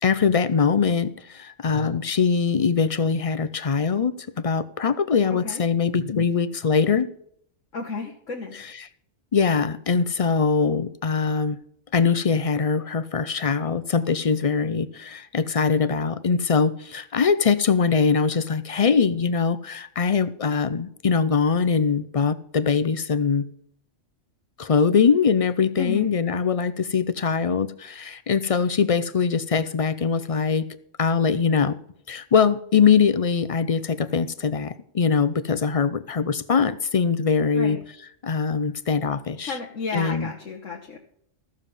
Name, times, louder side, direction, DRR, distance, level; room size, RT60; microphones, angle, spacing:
voice 1, 0.0-7.1 8.5-8.9 9.3-11.6 11.9-23.5 24.6-30.7 31.0-31.8 32.1-39.6 39.9-40.3, left 5 dB, 50° left, 0.4 m, -22 dB
voice 2, 7.7-8.6 25.8-26.1 37.5-37.8 39.4-41.0, left 4 dB, 75° left, 1.6 m, -32 dB
14.5 x 7.2 x 5.4 m
omnidirectional pair, 1.3 m